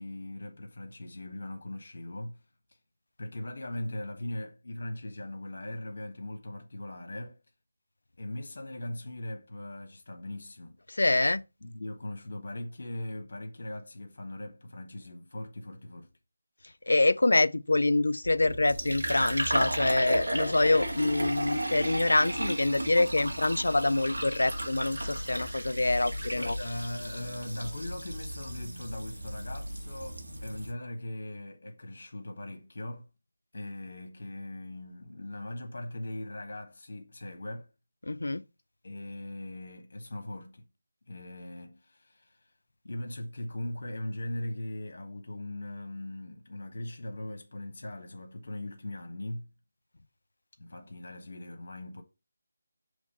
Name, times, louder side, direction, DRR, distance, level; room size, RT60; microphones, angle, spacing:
voice 1, 0.0-2.4 3.2-7.4 8.2-10.8 11.6-16.1 26.3-33.1 33.5-37.7 38.8-40.7 41.1-42.5 42.8-49.5 50.6-52.0, left 1 dB, 60° left, 1.2 m, -40 dB
voice 2, 11.0-11.4 16.9-26.5 38.1-38.4, left 2 dB, 80° left, 0.4 m, -25 dB
Fill (with liquid), 18.2-30.7, right 1 dB, 90° right, 1.8 m, -34 dB
6.1 x 3.1 x 5.5 m
figure-of-eight pair, 165°, 0 cm